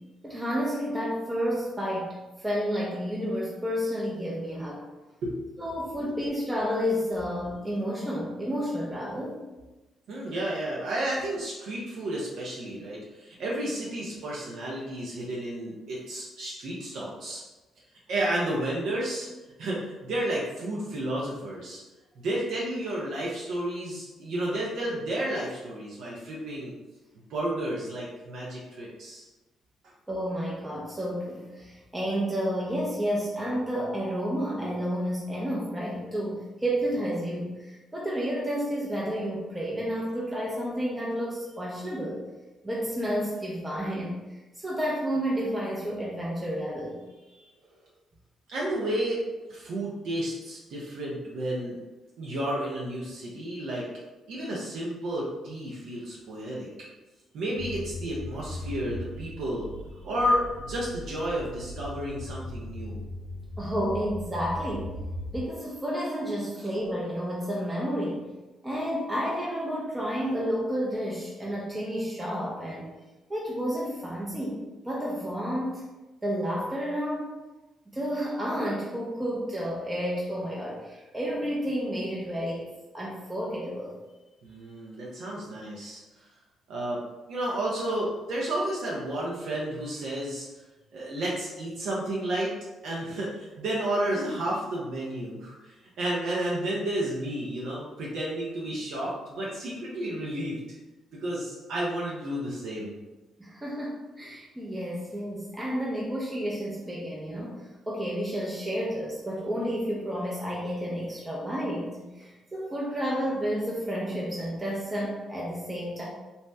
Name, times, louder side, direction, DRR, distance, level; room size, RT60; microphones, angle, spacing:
voice 1, 0.2-4.8 5.6-9.5 30.1-42.2 42.6-44.2 44.6-47.0 63.6-64.9 65.3-68.2 68.6-72.9 73.3-75.8 76.2-77.3 77.9-82.7 82.9-84.0 103.4-116.0, equal, 15° right, -4 dB, 0.5 m, -31 dB
voice 2, 5.2-5.7 6.1-6.2 10.1-17.4 18.1-19.3 19.6-21.8 22.2-26.7 27.3-29.3 47.3-47.5 48.5-49.2 49.5-51.7 52.2-53.9 54.3-56.7 57.3-59.7 60.0-63.0 84.4-86.0 86.7-87.0 87.3-90.5 90.9-92.5 92.8-100.6 101.2-102.9, right 1 dB, 75° right, -5 dB, 0.6 m, -31 dB
sound 1, 57.6-65.5, left 1 dB, 80° left, 0.4 m, -38 dB
2.7 x 2.0 x 3.3 m, 1.1 s
cardioid pair, 90°, 0 cm